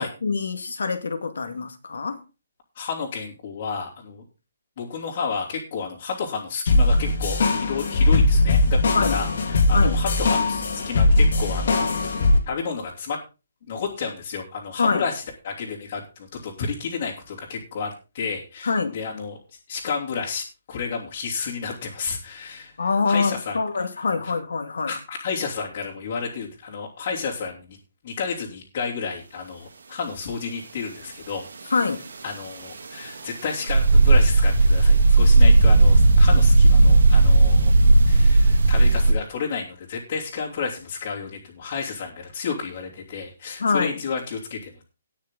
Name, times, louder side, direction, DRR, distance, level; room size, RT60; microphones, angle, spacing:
voice 1, 0.0-2.2 8.9-9.2 9.7-10.0 14.8-15.0 18.6-19.0 22.8-24.9 31.7-32.1 43.6-44.0, left 4 dB, 80° left, 2.1 m, -24 dB
voice 2, 2.7-4.2 4.8-13.2 13.7-19.4 19.7-23.6 24.9-27.8 28.0-31.7 32.2-37.7 38.1-44.8, left 5 dB, 35° left, 3.1 m, -31 dB
sound 1, 6.7-12.4, left 2 dB, 55° left, 2.7 m, -20 dB
sound 2, 33.7-39.1, right 2 dB, 70° right, 2.5 m, -15 dB
18.5 x 6.5 x 3.8 m
hypercardioid pair, 175°, 0 cm